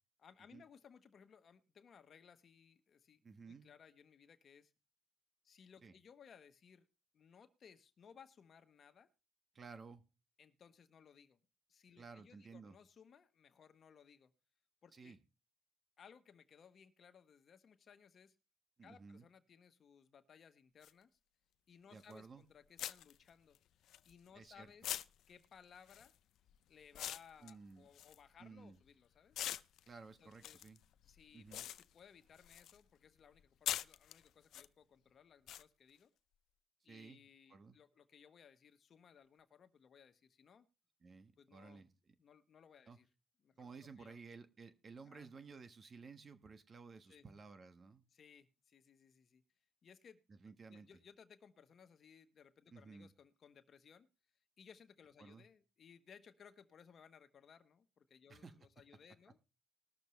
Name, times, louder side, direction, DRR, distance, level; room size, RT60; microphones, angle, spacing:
voice 1, 0.2-4.7 5.4-6.9 7.1-9.1 10.4-11.4 11.7-14.3 14.8-15.2 16.0-18.3 18.8-21.2 21.7-23.6 24.0-24.9 25.3-26.1 26.7-29.4 30.2-30.7 31.0-36.1 36.8-40.7 41.4-41.8 42.2-43.1 43.4-43.7 44.0-44.2 45.0-45.3 47.1-47.2 48.1-49.4 49.8-50.2 50.7-54.1 54.6-59.5, left 7 dB, 55° left, 9 dB, 1.1 m, -62 dB
voice 2, 3.2-3.6 5.8-5.9 9.5-10.0 12.0-12.8 14.9-15.2 18.8-19.3 21.9-22.4 24.3-24.7 27.4-27.9 28.4-28.8 29.9-30.8 31.3-31.6 36.9-37.2 37.5-37.8 41.0-41.9 42.9-43.0 43.6-48.1 50.3-50.9 52.7-53.1 55.2-55.4 58.3-58.5, right 4 dB, 40° right, 10 dB, 1.3 m, -55 dB
sound 1, 20.8-20.9 22.1-22.3 22.8-24.4 24.8-28.9 29.3-32.8 33.1-34.7 35.5-35.6, left 11 dB, 80° left, 0.4 m, -45 dB
20.0 x 6.8 x 3.2 m, 0.31 s
cardioid pair, 90°, 0 cm